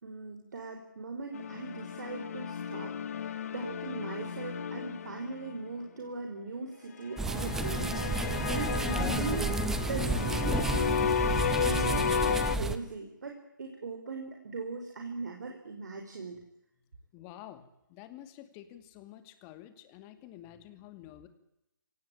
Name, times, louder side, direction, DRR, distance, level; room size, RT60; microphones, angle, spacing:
voice 1, 0.0-2.9 3.2-10.9 11.2-16.4, right 3 dB, 55° right, 3 dB, 4.7 m, -40 dB
sound 1, 1.3-5.7 7.1-12.6, left 7 dB, 45° left, 1.5 m, -33 dB
sound 2, 7.2-12.8, right 3 dB, 5° right, 1.0 m, -31 dB
voice 2, 17.1-21.3, left 12 dB, 20° left, 11 dB, 2.4 m, -49 dB
26.0 x 18.5 x 9.0 m, 0.83 s
figure-of-eight pair, 150°, 11 cm